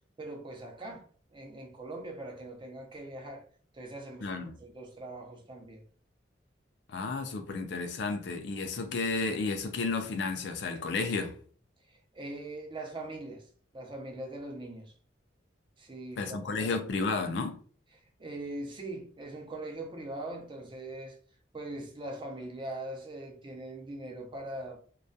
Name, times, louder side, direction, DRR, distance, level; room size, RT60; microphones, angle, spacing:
voice 1, 0.2-1.0 1.3-3.5 3.7-5.8 11.9-13.4 13.7-14.9 15.8-16.8 18.2-21.2 21.5-24.8, right 2 dB, 25° right, 0.5 m, -41 dB
voice 2, 4.2-4.6 6.9-11.4 16.2-17.6, left 3 dB, 65° left, 0.4 m, -32 dB
2.2 x 2.2 x 2.6 m
head